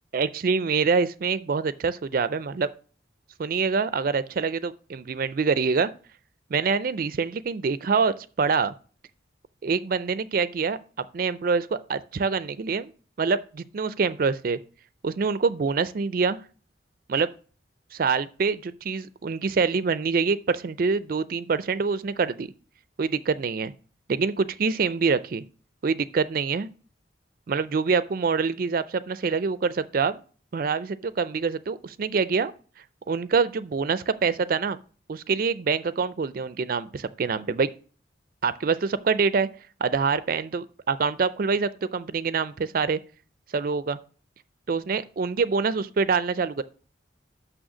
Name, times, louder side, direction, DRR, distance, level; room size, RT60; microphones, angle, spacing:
voice 1, 0.1-2.7 3.4-5.9 6.5-8.7 9.6-12.9 13.2-14.6 15.0-16.4 17.1-17.3 17.9-22.5 23.0-23.7 24.1-25.4 25.8-26.7 27.5-30.2 30.5-32.5 33.1-34.8 35.1-37.7 38.4-39.5 39.8-43.0 43.5-44.0 44.7-46.6, right 5 dB, 50° right, 0.4 m, -25 dB
6.3 x 6.3 x 6.1 m
head